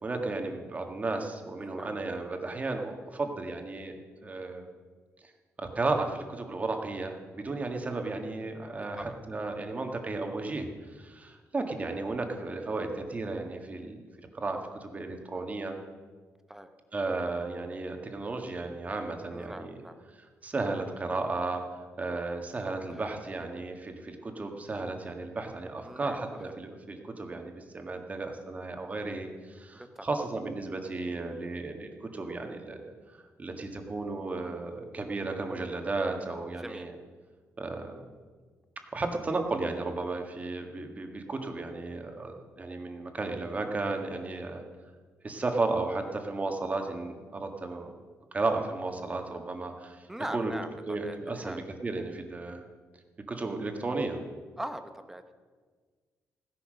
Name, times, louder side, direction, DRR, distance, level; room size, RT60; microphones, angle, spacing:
voice 1, 0.0-3.9 4.2-4.7 5.6-15.8 16.9-19.7 20.4-32.8 33.1-36.9 37.6-38.0 38.9-44.6 45.2-47.9 48.3-50.1 50.3-50.5 50.9-52.6 53.3-54.2, right 3 dB, 25° right, 4 dB, 1.7 m, -34 dB
voice 2, 1.6-1.9 9.0-9.2 16.5-16.7 19.3-20.0 22.9-23.1 25.8-26.5 29.7-30.1 36.5-36.9 50.1-51.6 54.6-55.3, right 1 dB, 5° right, 8 dB, 1.0 m, -41 dB
16.0 x 10.5 x 6.5 m, 1.5 s
cardioid pair, 140°, 6 cm